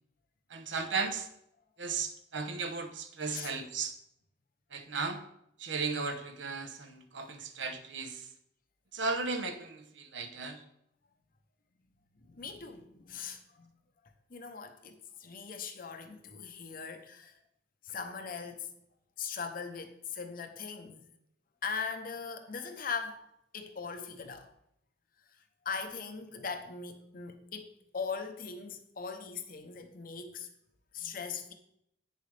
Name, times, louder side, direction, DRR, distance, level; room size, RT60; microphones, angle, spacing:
voice 1, 0.5-1.3 1.8-3.9 4.7-5.2 5.6-8.3 8.9-10.6, right 4 dB, 80° right, 8 dB, 0.9 m, -35 dB
voice 2, 12.3-13.7 14.3-17.3 17.8-18.7 19.2-21.1 21.6-23.2 23.5-24.5 25.6-30.5 30.9-31.5, left 5 dB, 50° left, 7 dB, 0.8 m, -40 dB
8.8 x 6.6 x 3.4 m, 0.76 s
head